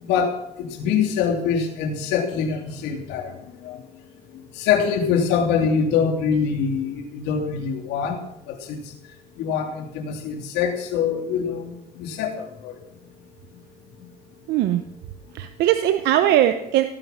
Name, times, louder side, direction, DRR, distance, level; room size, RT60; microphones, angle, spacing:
voice 1, 0.0-3.3 3.6-3.8 4.6-8.2 8.5-8.8 9.4-12.7, left 6 dB, 90° left, 4 dB, 3.1 m, -24 dB
voice 2, 14.5-14.8 15.3-16.8, right 12 dB, 85° right, 9 dB, 0.9 m, -20 dB
17.5 x 9.4 x 5.9 m, 0.81 s
cardioid pair, 110°, 17 cm